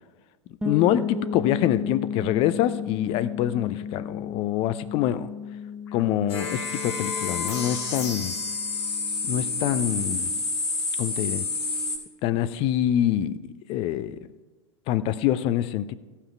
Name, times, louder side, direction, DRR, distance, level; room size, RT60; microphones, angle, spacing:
voice 1, 0.6-5.3 5.9-8.3 9.3-10.3 11.0-11.4 12.2-14.3 14.9-15.9, left 11 dB, 35° left, 14 dB, 0.5 m, -25 dB
sound 1, 0.6-10.3, left 7 dB, 5° right, 1.1 m, -35 dB
sound 2, 6.0-6.1 6.3-12.0, left 3 dB, 65° left, 3.7 m, -29 dB
16.5 x 5.8 x 4.5 m, 1.3 s
figure-of-eight pair, 90°, 16 cm